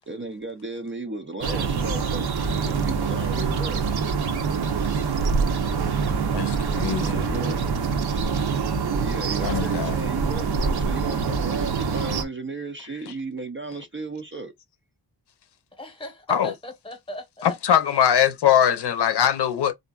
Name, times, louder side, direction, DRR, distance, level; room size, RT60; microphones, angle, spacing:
voice 1, 0.1-3.9 7.0-7.6 8.1-8.2 8.9-14.5, right 2 dB, 30° right, 0.5 m, -35 dB
sound 1, 1.4-12.2, right 5 dB, 65° right, 0.8 m, -25 dB
voice 2, 6.3-7.6 9.4-10.0 13.1-13.2 16.3-16.5 17.4-19.7, left 9 dB, 75° left, 0.6 m, -22 dB
voice 3, 15.7-17.5 18.0-18.1, equal, 15° left, 1.0 m, -40 dB
4.1 x 2.5 x 2.3 m
wide cardioid pair, 165°, 41 cm